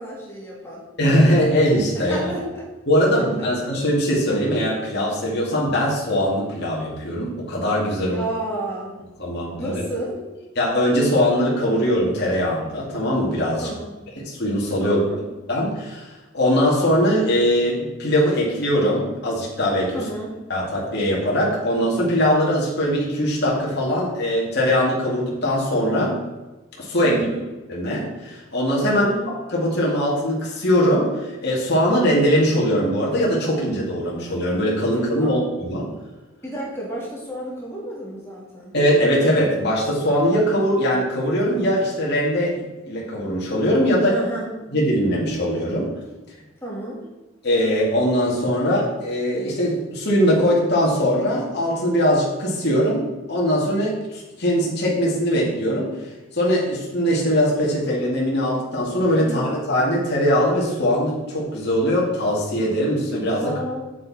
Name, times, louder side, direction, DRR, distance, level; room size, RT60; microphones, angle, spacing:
voice 1, 0.0-0.8 1.9-2.6 3.1-3.5 8.0-9.0 9.6-10.2 13.6-13.9 14.8-15.2 19.9-20.4 27.0-27.4 28.8-29.3 35.2-35.3 36.4-38.7 44.1-44.5 46.6-47.0 59.2-59.5 63.4-63.8, right 1 dB, 10° left, -4 dB, 2.5 m, -31 dB
voice 2, 1.0-2.3 2.9-8.2 9.2-9.8 10.6-13.7 14.1-15.0 15.5-20.0 20.5-26.2 26.8-27.2 27.7-29.1 29.5-35.9 38.7-42.6 42.8-44.2 44.7-45.9 47.4-55.9 56.3-63.5, equal, 50° left, -4 dB, 2.2 m, -21 dB
8.0 x 7.5 x 4.2 m, 1.2 s
head